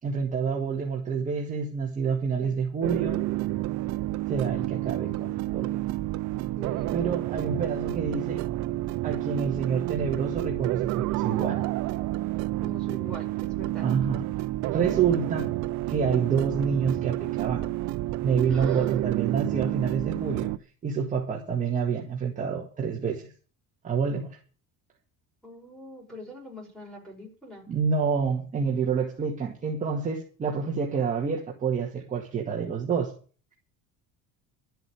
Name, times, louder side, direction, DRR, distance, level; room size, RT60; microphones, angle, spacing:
voice 1, 0.0-3.2 4.3-5.8 6.9-8.4 9.0-11.6 13.8-14.2 14.7-15.5 15.9-17.7 18.2-20.5 20.8-23.3 23.8-24.4 27.7-33.1, right 6 dB, 25° right, 2.0 m, -28 dB
sound 1, 2.8-20.6, right 17 dB, 55° right, 0.7 m, -29 dB
voice 2, 6.6-7.0 12.6-13.9 18.5-19.0 25.4-27.7, equal, ahead, 5.8 m, -43 dB
12.5 x 8.0 x 9.4 m
cardioid pair, 170°, 33 cm